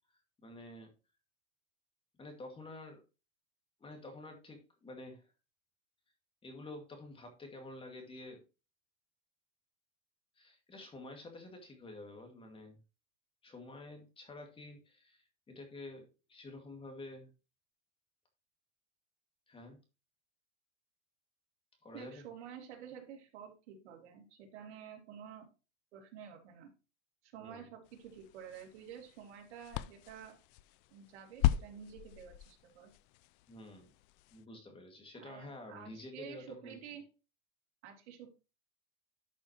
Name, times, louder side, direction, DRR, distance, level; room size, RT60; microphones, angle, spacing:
voice 1, 0.4-0.9 2.2-3.0 3.8-5.2 6.4-8.4 10.4-12.8 13.4-17.3 19.5-19.8 21.8-22.2 27.4-27.7 33.5-33.9 34.3-36.8, left 2 dB, 15° left, 4 dB, 2.2 m, -49 dB
voice 2, 21.9-25.5 25.9-26.7 27.2-30.4 30.9-32.9 35.1-37.0 37.8-38.3, right 8 dB, 80° right, 2 dB, 3.0 m, -50 dB
sound 1, 27.8-34.4, left 13 dB, 50° left, 0.5 m, -39 dB
11.5 x 6.0 x 3.0 m, 0.30 s
supercardioid pair, 145°, 34 cm